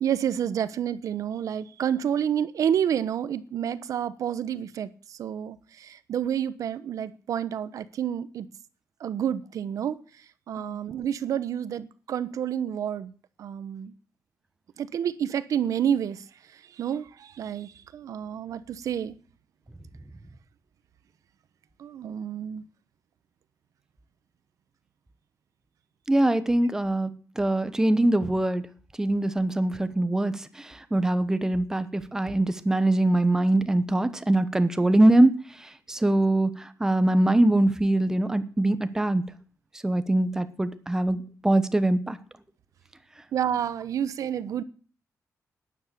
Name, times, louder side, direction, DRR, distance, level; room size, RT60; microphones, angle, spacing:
voice 1, 0.0-8.5 9.0-10.0 10.5-13.1 13.4-13.9 14.8-16.2 16.5-19.2 21.8-22.6 43.3-44.6, right 9 dB, 75° right, 1.0 m, -29 dB
voice 2, 26.1-27.1 27.4-28.6 29.0-35.3 35.6-39.2 39.8-42.2, right 1 dB, 10° right, 1.0 m, -23 dB
12.5 x 10.0 x 6.8 m
wide cardioid pair, 170°, 6 cm